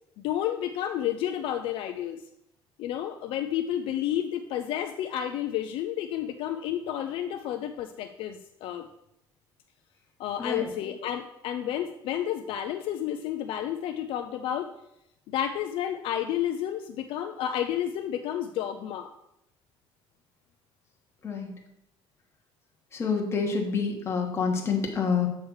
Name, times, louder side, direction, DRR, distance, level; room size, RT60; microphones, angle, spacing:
voice 1, 0.2-2.2 2.8-8.9 10.2-14.7 15.3-19.1, left 10 dB, 65° left, 6 dB, 0.4 m, -31 dB
voice 2, 22.9-25.3, left 5 dB, 25° left, 1 dB, 1.2 m, -27 dB
7.8 x 3.2 x 6.3 m, 0.81 s
cardioid pair, 160°, 10 cm